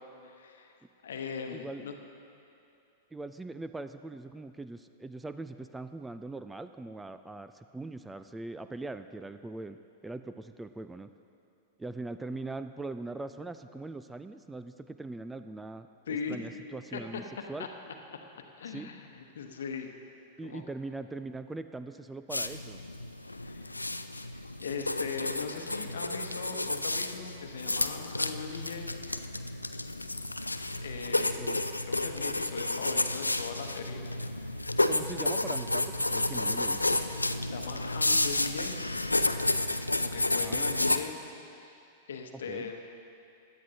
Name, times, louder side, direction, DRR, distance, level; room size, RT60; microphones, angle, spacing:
voice 1, 0.2-0.7 1.0-1.9 16.1-16.4 16.9-17.2 17.6-17.7 18.1-19.9 20.4-20.6 23.4-23.8 24.3-28.9 30.8-31.4 31.8-34.0 37.4-38.7 40.0-41.2 41.6-41.8 42.1-42.8, left 5 dB, 65° left, 5 dB, 0.9 m, -39 dB
voice 2, 1.5-1.9 3.1-9.8 10.0-11.1 11.8-17.2 17.5-17.7 18.7-18.9 20.4-22.8 31.4-31.6 34.9-37.0 40.4-40.7 42.3-42.7, right 2 dB, 10° right, 10 dB, 0.3 m, -41 dB
sound 1, 22.3-41.0, left 2 dB, 90° left, 0.3 m, -31 dB
16.5 x 11.0 x 2.8 m, 2.6 s
figure-of-eight pair, 95°, 0 cm